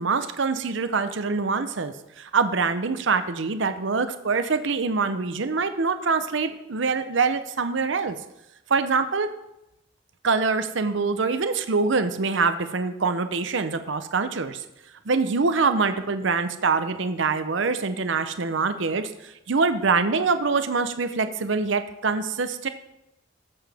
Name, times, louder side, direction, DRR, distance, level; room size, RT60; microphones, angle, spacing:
voice 1, 0.0-8.2 8.7-9.3 10.2-14.6 15.1-22.7, right 4 dB, 65° right, 10 dB, 0.7 m, -24 dB
15.0 x 7.0 x 3.5 m, 0.88 s
head